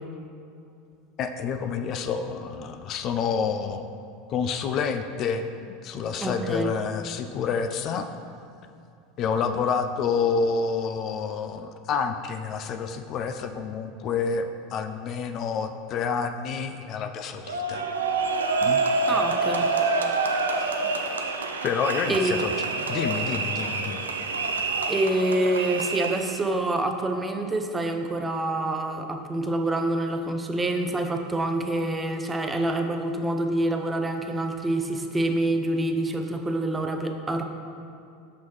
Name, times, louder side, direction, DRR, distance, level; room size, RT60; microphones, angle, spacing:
voice 1, 1.2-3.9 4.3-5.5 5.8-8.1 9.2-17.9 18.6-18.8 20.8-20.9 21.6-22.6 22.9-24.1, left 5 dB, 45° left, 7 dB, 0.3 m, -28 dB
voice 2, 6.2-6.7 19.1-19.7 22.1-22.3 24.9-37.4, right 1 dB, 15° right, 5 dB, 0.5 m, -26 dB
sound 1, 17.5-26.4, right 3 dB, 85° right, 0.4 m, -27 dB
6.1 x 5.5 x 3.1 m, 2.6 s
hypercardioid pair, 85°, 0 cm